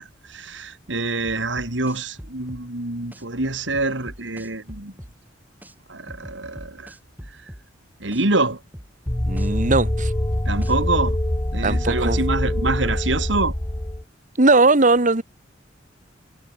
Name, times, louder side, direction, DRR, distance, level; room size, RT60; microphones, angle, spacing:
voice 1, 0.0-4.9 5.9-6.9 8.0-8.6 10.5-11.2 11.5-13.5, right 2 dB, 75° right, 3.3 m, -25 dB
sound 1, 1.2-2.6 3.1-3.2 3.7-5.1 5.6-5.7 6.1-7.6 8.1-8.2 8.7-10.1 10.6-10.7, equal, 10° right, 6.8 m, -41 dB
sound 2, 9.1-14.0, left 1 dB, 20° left, 0.9 m, -24 dB
voice 2, 9.3-10.1 11.6-12.2 14.4-15.2, right 3 dB, 45° right, 1.6 m, -18 dB
head